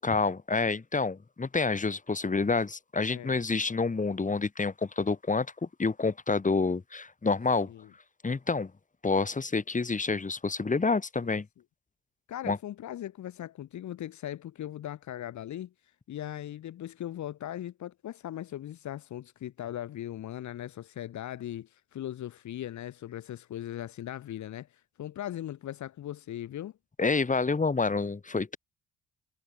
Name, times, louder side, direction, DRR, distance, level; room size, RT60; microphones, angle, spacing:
voice 1, 0.0-7.7 8.2-8.7 9.0-11.5 12.5-12.6 27.0-28.6, left 4 dB, 25° left, 4.1 m, -28 dB
voice 2, 12.3-15.7 16.1-26.7, left 12 dB, 70° left, 2.2 m, -39 dB
cardioid pair, 90°, 30 cm